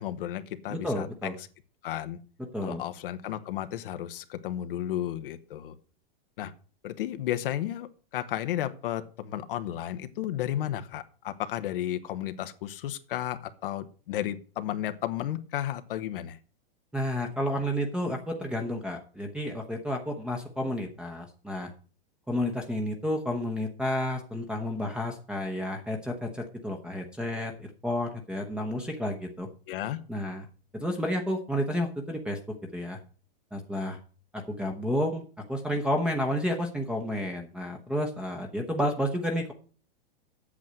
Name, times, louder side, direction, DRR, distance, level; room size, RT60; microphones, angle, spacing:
voice 1, 0.0-1.3 1.8-2.2 2.6-5.7 6.4-6.5 6.8-16.4 29.7-30.0, left 12 dB, 70° left, 1.1 m, -33 dB
voice 2, 0.7-1.3 2.5-2.8 16.9-21.7 22.3-29.5 30.1-30.5 30.7-32.4 32.7-33.0 33.5-34.0 34.3-39.5, equal, 5° right, 1.0 m, -31 dB
8.5 x 6.3 x 7.6 m
hypercardioid pair, 140°, 29 cm